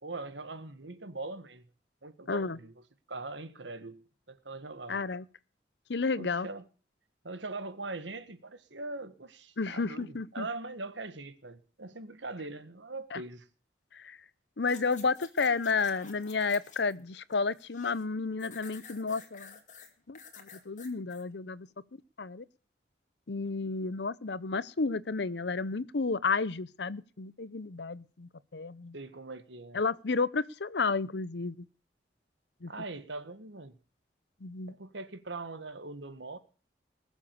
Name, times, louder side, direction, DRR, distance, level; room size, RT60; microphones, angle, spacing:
voice 1, 0.0-1.7 2.0-2.7 3.1-4.0 4.3-5.0 6.2-6.7 7.2-13.5 18.4-18.5 28.9-29.8 32.7-33.7 34.7-36.4, right 3 dB, 90° right, 1.6 m, -41 dB
voice 2, 2.3-2.6 4.9-5.2 5.9-6.5 9.6-10.5 13.1-13.2 13.9-14.2 14.6-19.6 20.1-21.7 22.2-22.4 23.3-28.9 29.7-31.7 32.6-32.7 34.4-34.7, left 4 dB, 70° left, 0.7 m, -32 dB
sound 1, 14.6-17.0 17.3-18.0 18.4-21.2 21.7-21.8, left 6 dB, 40° left, 2.5 m, -51 dB
20.5 x 7.3 x 6.9 m
head